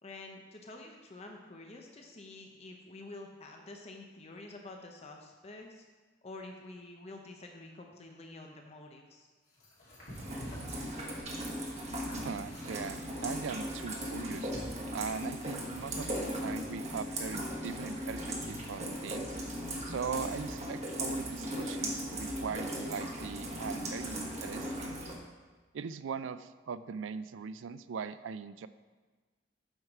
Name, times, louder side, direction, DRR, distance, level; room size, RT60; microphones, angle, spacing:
voice 1, 0.0-5.8 6.2-9.3, left 2 dB, 35° left, 2 dB, 0.7 m, -48 dB
sound 1, 9.6-15.4, equal, 55° left, 2.8 m, -49 dB
Rain, 10.2-25.1, equal, 35° right, 1.3 m, -38 dB
voice 2, 11.8-14.5 14.9-16.1 16.4-19.3 19.9-24.9 25.7-28.7, right 6 dB, 70° right, 14 dB, 0.4 m, -40 dB
7.9 x 5.7 x 4.7 m, 1.4 s
head